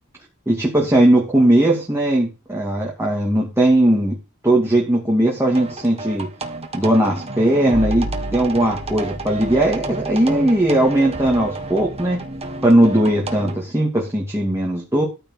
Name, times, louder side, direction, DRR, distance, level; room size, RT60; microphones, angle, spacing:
voice 1, 0.5-4.2 4.4-6.3 6.7-12.2 12.6-15.0, right 1 dB, 10° right, -1 dB, 2.5 m, -18 dB
sound 1, 5.5-13.6, right 2 dB, 30° right, 1.9 m, -30 dB
13.5 x 5.1 x 6.6 m, 0.28 s
head